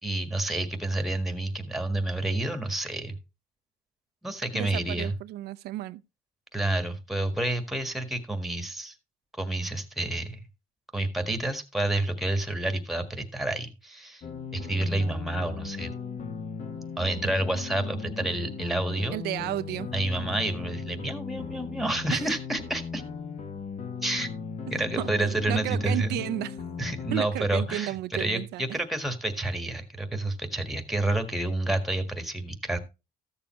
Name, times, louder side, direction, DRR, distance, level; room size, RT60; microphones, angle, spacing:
voice 1, 0.0-3.2 4.2-5.1 6.5-8.9 9.4-10.4 10.9-14.2 14.5-15.9 17.0-19.2 19.9-23.0 24.0-24.3 24.7-26.2 26.8-32.8, right 2 dB, ahead, 1.6 m, -29 dB
voice 2, 4.6-6.0 19.1-19.9 22.1-22.2 25.0-26.6 27.1-28.8, right 15 dB, 80° right, 0.5 m, -33 dB
sound 1, 14.2-27.2, left 5 dB, 45° left, 1.4 m, -37 dB
14.0 x 7.0 x 3.1 m
cardioid pair, 110°, 17 cm